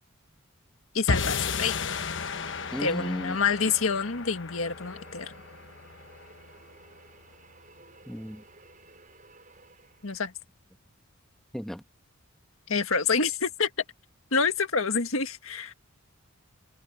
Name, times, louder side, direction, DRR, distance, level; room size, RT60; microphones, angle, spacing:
voice 1, 0.9-1.8 2.8-5.3 10.0-10.3 12.7-13.7 14.3-15.7, left 5 dB, 80° left, 1.8 m, -27 dB
sound 1, 1.1-7.4, left 4 dB, 60° left, 1.2 m, -34 dB
sound 2, 2.1-10.4, right 3 dB, 40° right, 6.2 m, -55 dB
voice 2, 2.7-3.4 8.1-8.4 11.5-11.8, equal, ahead, 1.4 m, -34 dB
head